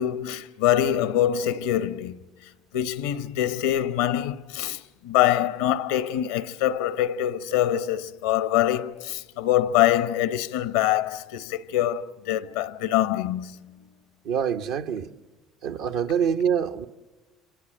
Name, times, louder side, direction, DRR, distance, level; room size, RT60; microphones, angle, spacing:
voice 1, 0.0-2.2 2.7-13.5, left 12 dB, 85° left, 0.8 m, -24 dB
voice 2, 14.2-15.1 15.6-16.9, right 7 dB, 75° right, 1.0 m, -25 dB
27.0 x 26.0 x 7.7 m
hypercardioid pair, 70°, 0 cm